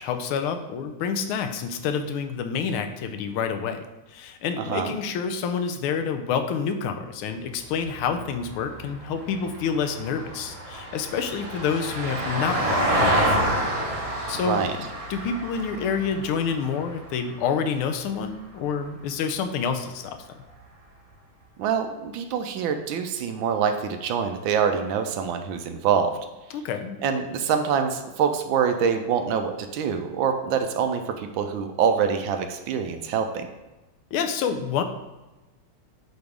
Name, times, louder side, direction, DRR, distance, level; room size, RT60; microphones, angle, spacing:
voice 1, 0.0-13.6 14.3-20.2 26.5-27.0 34.1-34.8, left 6 dB, 85° left, 7 dB, 1.5 m, -28 dB
voice 2, 4.6-4.9 14.4-14.7 21.6-26.2 27.0-33.5, right 7 dB, 75° right, 6 dB, 1.3 m, -25 dB
Vehicle, 7.6-18.1 20.4-20.5, right 1 dB, 50° right, 0.4 m, -29 dB
8.0 x 3.3 x 3.6 m, 1.1 s
omnidirectional pair, 2.3 m